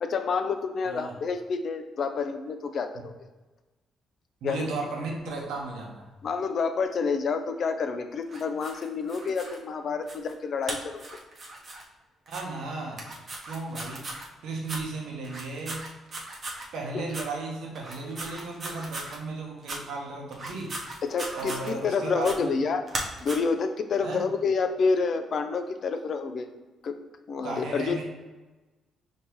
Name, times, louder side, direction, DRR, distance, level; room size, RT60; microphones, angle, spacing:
voice 1, 0.0-3.1 4.4-4.7 6.2-11.0 16.9-17.0 21.0-22.8 23.2-26.5 26.8-27.0 27.3-28.0, left 5 dB, 55° left, 7 dB, 0.4 m, -28 dB
voice 2, 4.4-6.1 12.3-13.0 13.5-14.1 14.4-15.8 16.7-20.7 21.3-22.5 24.0-24.3 27.4-28.0, right 3 dB, 85° right, -1 dB, 0.9 m, -35 dB
sound 1, 8.3-9.6 10.1-10.3 10.6-11.8 12.3-12.4 12.9-14.3 14.6-14.8 15.2-16.7 17.1-17.3 17.8-19.2 19.6-19.8 20.3-21.9 22.2-22.4 22.9-23.4, right 2 dB, 45° right, 0.8 m, -37 dB
5.2 x 2.7 x 3.0 m, 1.2 s
cardioid pair, 90°, 0 cm